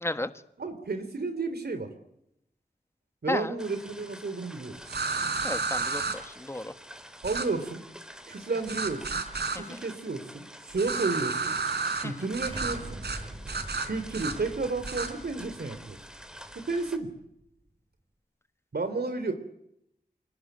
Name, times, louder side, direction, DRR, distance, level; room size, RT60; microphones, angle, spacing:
voice 1, 0.6-1.9 3.2-4.7 7.2-7.8 8.3-9.1 9.5-11.6 12.0-13.0 13.8-16.0 16.7-17.1 18.7-19.3, right 3 dB, 75° right, 8 dB, 3.6 m, -32 dB
sound 1, 3.6-17.0, equal, 5° right, 3.8 m, -48 dB
sound 2, 4.9-6.2 7.2-7.5 8.7-9.6 10.7-12.0 12.3-12.8 13.0-13.2 13.5-14.3 14.8-15.1, right 4 dB, 90° right, 4.1 m, -31 dB
voice 2, 5.4-6.7 9.7-9.8 12.0-12.1, left 1 dB, 15° left, 10 dB, 1.5 m, -33 dB
Explosion, 12.5-17.3, right 1 dB, 35° right, 6.6 m, -44 dB
28.5 x 19.5 x 9.3 m, 0.78 s
wide cardioid pair, 80°, 17 cm